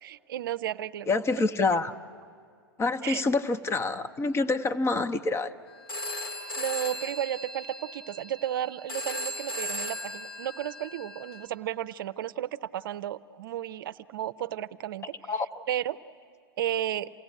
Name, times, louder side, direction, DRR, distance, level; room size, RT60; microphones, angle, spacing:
voice 1, 0.0-1.1 3.0-3.2 6.6-15.3 15.7-16.0 16.6-17.1, right 11 dB, 65° right, 12 dB, 0.6 m, -33 dB
voice 2, 1.1-1.9 2.8-5.5 15.3-15.5, left 3 dB, 20° left, 9 dB, 0.9 m, -26 dB
Telephone, 5.9-11.5, left 1 dB, 75° left, 4.2 m, -37 dB
28.5 x 17.0 x 8.3 m, 2.2 s
hypercardioid pair, 100°, 12 cm